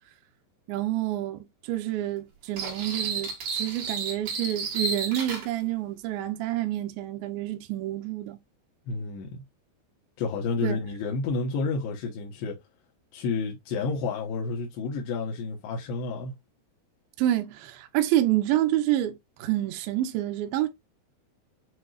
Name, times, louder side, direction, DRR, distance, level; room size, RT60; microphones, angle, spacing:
voice 1, 0.7-8.4 10.6-10.8 17.2-20.7, right 13 dB, 75° right, 2.3 m, -28 dB
sound 1, 2.6-5.5, right 4 dB, 55° right, 2.9 m, -32 dB
voice 2, 8.9-9.4 10.2-12.6 13.1-16.3, left 4 dB, 80° left, 3.2 m, -30 dB
7.7 x 2.9 x 2.4 m
omnidirectional pair, 4.9 m